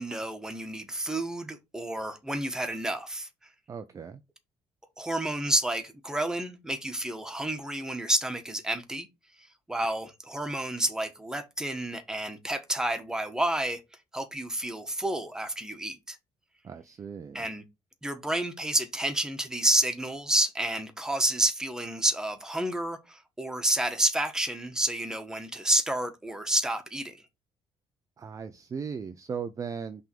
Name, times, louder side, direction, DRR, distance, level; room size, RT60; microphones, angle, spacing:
voice 1, 0.0-3.3 5.0-9.1 9.7-13.8 14.1-16.2 17.3-17.6 18.0-27.2, right 1 dB, 5° right, 1.3 m, -29 dB
voice 2, 3.7-4.2 16.6-17.5 28.2-30.1, right 6 dB, 30° right, 0.5 m, -37 dB
5.8 x 3.6 x 5.2 m
cardioid pair, 130°, 11 cm